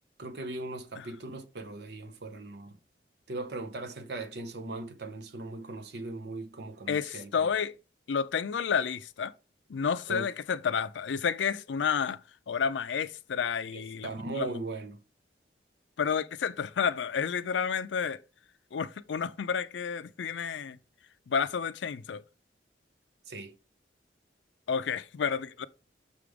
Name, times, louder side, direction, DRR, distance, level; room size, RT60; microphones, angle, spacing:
voice 1, 0.2-2.8 3.3-7.5 10.1-10.3 13.7-15.0 23.3-23.5, right 2 dB, 65° right, 0.9 m, -39 dB
voice 2, 6.9-7.8 8.1-9.3 9.7-12.2 12.5-14.1 14.4-14.5 16.0-18.2 18.7-20.8 21.3-22.2 24.7-25.7, left 6 dB, 85° left, 0.4 m, -30 dB
6.7 x 3.5 x 4.9 m
head